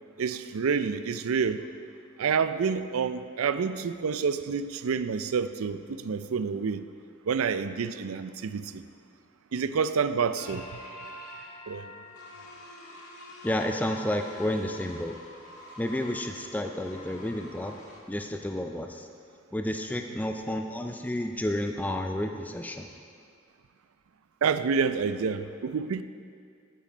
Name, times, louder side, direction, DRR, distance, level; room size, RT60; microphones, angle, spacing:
voice 1, 0.2-1.6 2.2-6.8 7.3-8.8 9.5-10.6 11.7-11.9 24.4-26.0, right 6 dB, 85° right, 12 dB, 0.4 m, -28 dB
sound 1, 10.4-18.0, left 1 dB, 90° left, 1.7 m, -46 dB
voice 2, 13.4-15.1 15.8-17.8 18.1-19.1 19.5-22.9, left 1 dB, 10° left, 4 dB, 0.3 m, -31 dB
9.3 x 8.4 x 5.0 m, 2.3 s
head